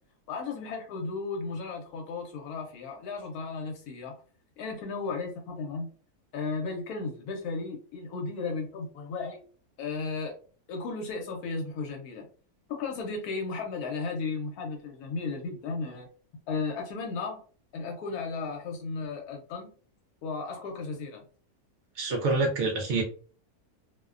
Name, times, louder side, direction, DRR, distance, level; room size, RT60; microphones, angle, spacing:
voice 1, 0.3-4.2 4.6-5.9 6.3-9.4 9.8-10.3 10.7-12.3 12.7-16.1 16.5-17.4 17.7-19.7 20.2-21.2, left 4 dB, 85° left, 2 dB, 1.1 m, -35 dB
voice 2, 22.0-23.0, right 3 dB, 65° right, 1 dB, 0.7 m, -26 dB
2.5 x 2.1 x 2.3 m, 0.41 s
omnidirectional pair, 1.5 m